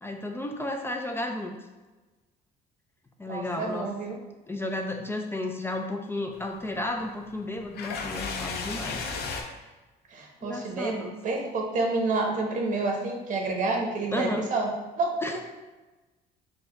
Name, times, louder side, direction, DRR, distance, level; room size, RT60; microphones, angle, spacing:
voice 1, 0.0-1.6 3.2-3.9 4.5-9.0 10.4-11.1 14.1-14.4 15.2-15.4, left 1 dB, 15° left, 3 dB, 0.4 m, -33 dB
voice 2, 3.3-4.2 10.1-15.1, right 3 dB, 50° right, 1 dB, 0.9 m, -29 dB
sound 1, 6.3-9.4, left 4 dB, 70° left, 0.6 m, -35 dB
4.8 x 2.2 x 3.7 m, 1.2 s
cardioid pair, 110°, 17 cm